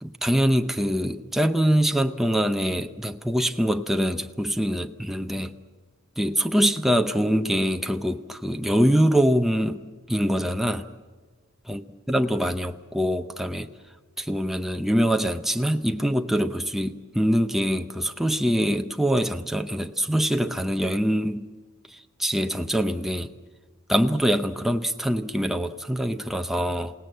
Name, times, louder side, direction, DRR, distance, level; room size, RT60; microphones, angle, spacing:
voice 1, 0.0-5.5 6.2-9.8 10.1-10.9 11.7-11.8 12.1-13.7 14.2-21.5 22.2-23.3 23.9-26.9, equal, ahead, 0.7 m, -24 dB
27.5 x 18.0 x 7.8 m
head